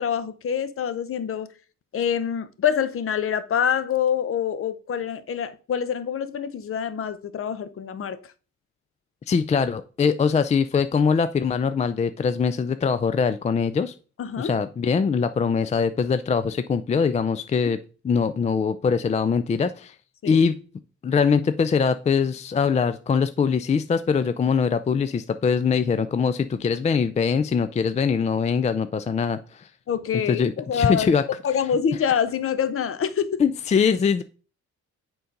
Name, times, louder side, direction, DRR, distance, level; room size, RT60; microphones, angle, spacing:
voice 1, 0.0-1.5 1.9-8.2 14.2-14.6 20.2-20.4 29.9-31.1 31.4-33.4, left 8 dB, 45° left, 0.7 m, -26 dB
voice 2, 9.3-13.9 14.4-17.8 18.0-19.9 20.3-20.6 21.0-29.7 30.3-31.2 33.4-34.2, left 6 dB, 25° left, 0.3 m, -22 dB
6.8 x 3.9 x 5.2 m
cardioid pair, 90°, 30 cm